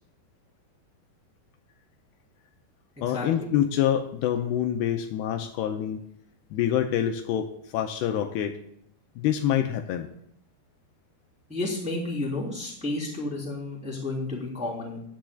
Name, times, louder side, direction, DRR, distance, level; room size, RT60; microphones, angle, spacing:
voice 1, 3.0-6.0 6.5-8.6 9.2-10.1, left 10 dB, 80° left, 5 dB, 2.6 m, -26 dB
voice 2, 11.5-15.0, left 2 dB, ahead, -5 dB, 2.2 m, -31 dB
15.0 x 9.9 x 2.4 m, 0.70 s
omnidirectional pair, 4.9 m